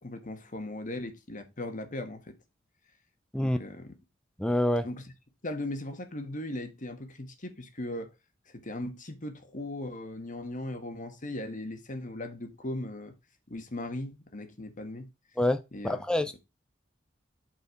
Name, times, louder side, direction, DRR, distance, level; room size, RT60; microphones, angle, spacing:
voice 1, 0.0-2.3 3.4-3.9 4.8-5.0 5.4-8.1 8.5-13.1 13.5-15.1 15.7-16.0, left 1 dB, 40° left, 1.5 m, -38 dB
voice 2, 4.4-4.9 15.4-16.4, left 1 dB, 5° left, 0.5 m, -27 dB
8.3 x 4.4 x 4.4 m
head